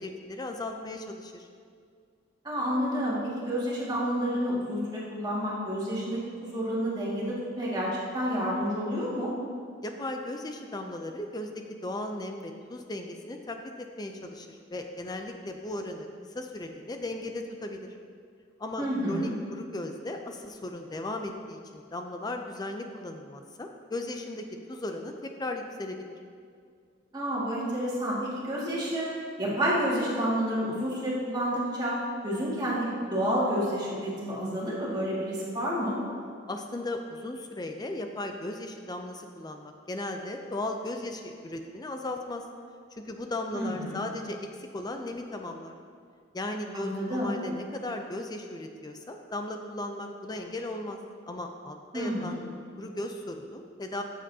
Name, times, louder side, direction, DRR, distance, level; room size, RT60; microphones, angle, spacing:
voice 1, 0.0-1.5 9.8-16.1 16.3-17.9 18.6-26.1 36.5-42.4 42.9-45.8 46.3-51.0 51.3-52.4 52.8-54.0, left 2 dB, 20° left, 4 dB, 0.4 m, -36 dB
voice 2, 2.4-9.3 18.8-19.4 27.1-32.0 32.2-36.0 43.5-44.0 46.7-47.3 51.9-52.4, equal, 20° right, -6 dB, 2.0 m, -29 dB
14.0 x 7.6 x 2.8 m, 2.2 s
head